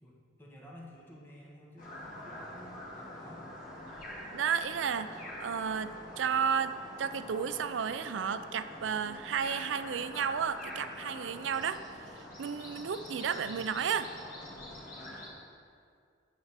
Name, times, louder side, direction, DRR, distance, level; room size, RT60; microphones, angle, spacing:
voice 1, 0.0-3.5, equal, 10° left, -4 dB, 1.5 m, -52 dB
sound 1, 1.8-15.3, left 1 dB, 50° left, 1.9 m, -45 dB
voice 2, 4.3-6.7 7.0-11.8 12.4-14.1, right 7 dB, 85° right, 12 dB, 0.4 m, -32 dB
8.9 x 4.3 x 7.3 m, 2.2 s
head